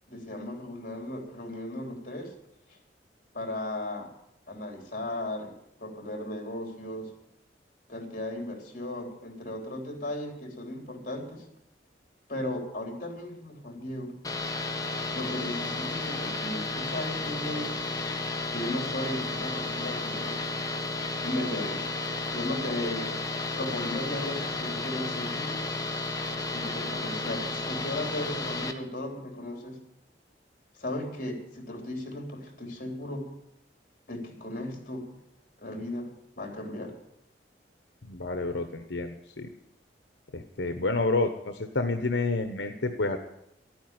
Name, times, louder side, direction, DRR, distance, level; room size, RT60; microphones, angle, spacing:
voice 1, 0.1-2.3 3.3-4.1 4.5-5.5 5.8-7.1 7.9-11.5 12.3-14.2 15.1-17.8 18.5-20.4 21.1-21.9 22.3-23.1 23.6-25.6 26.5-29.8 30.7-33.3 34.1-35.1 35.6-36.9, left 1 dB, 50° left, 3 dB, 3.5 m, -36 dB
sound 1, 14.2-28.7, left 2 dB, 20° left, 1.3 m, -33 dB
voice 2, 38.0-39.5 40.3-43.2, left 3 dB, 85° left, 7 dB, 1.0 m, -29 dB
12.5 x 9.3 x 9.5 m, 0.80 s
head